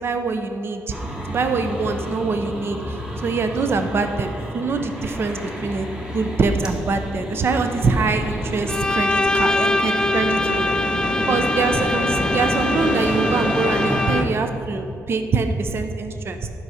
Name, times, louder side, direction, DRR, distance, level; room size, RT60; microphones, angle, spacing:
voice 1, 0.0-1.0 1.3-10.7 11.3-16.5, right 4 dB, 45° right, 7 dB, 0.7 m, -24 dB
sound 1, 0.9-14.2, equal, 15° right, 1.3 m, -29 dB
Bowed string instrument, 8.7-14.5, left 2 dB, 15° left, 0.3 m, -23 dB
11.0 x 5.5 x 6.4 m, 2.6 s
cardioid pair, 135°, 6 cm